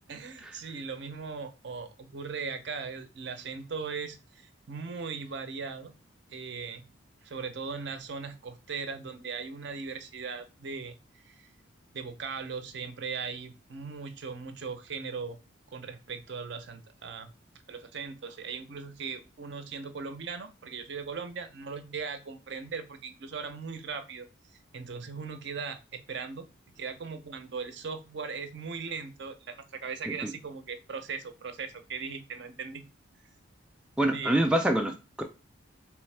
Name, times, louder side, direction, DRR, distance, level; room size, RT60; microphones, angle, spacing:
voice 1, 0.1-5.9 6.3-6.9 7.2-11.5 11.9-15.4 15.7-17.3 17.7-24.3 24.7-26.5 26.8-32.8 34.1-34.4, right 5 dB, 55° right, 0.5 m, -39 dB
voice 2, 34.0-35.2, right 1 dB, 5° right, 0.3 m, -25 dB
3.5 x 3.1 x 3.2 m
head